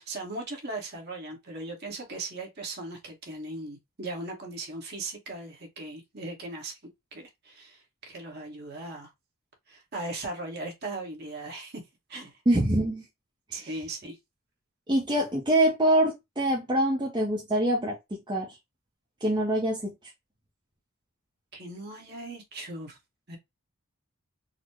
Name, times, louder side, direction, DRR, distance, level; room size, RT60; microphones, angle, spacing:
voice 1, 0.0-6.8 7.1-9.1 9.7-11.8 12.1-12.4 13.5-14.2 21.5-23.0 23.3-23.4, right 2 dB, 45° right, 1.3 m, -38 dB
voice 2, 12.5-13.0 13.5-13.7 14.9-18.6 19.2-19.9, right 1 dB, 20° right, 0.6 m, -25 dB
4.0 x 2.1 x 2.9 m
head